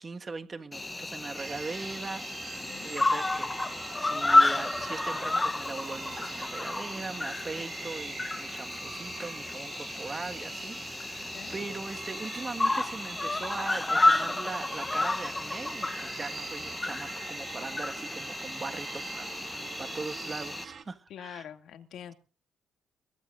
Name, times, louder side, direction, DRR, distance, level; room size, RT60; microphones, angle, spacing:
voice 1, 0.0-21.4, right 4 dB, 30° right, 7 dB, 1.7 m, -40 dB
Cricket, 0.7-20.6, left 2 dB, 20° left, 0.9 m, -31 dB
sound 1, 1.4-20.8, right 6 dB, 55° right, 2.5 m, -44 dB
voice 2, 11.2-11.5 21.1-22.1, left 9 dB, 75° left, 7 dB, 2.4 m, -45 dB
23.0 x 16.5 x 2.6 m, 0.37 s
cardioid pair, 90°, 0 cm